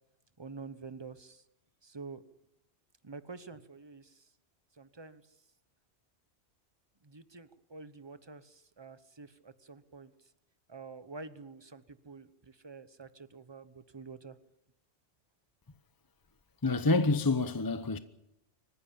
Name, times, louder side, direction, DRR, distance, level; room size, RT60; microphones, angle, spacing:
voice 1, 0.4-1.4 1.8-2.2 3.0-4.3 4.8-5.2 7.0-10.1 10.7-14.4, right 4 dB, 25° right, 1.1 m, -48 dB
voice 2, 16.6-18.0, left 3 dB, 20° left, 0.8 m, -27 dB
25.0 x 15.0 x 8.9 m
omnidirectional pair, 1.1 m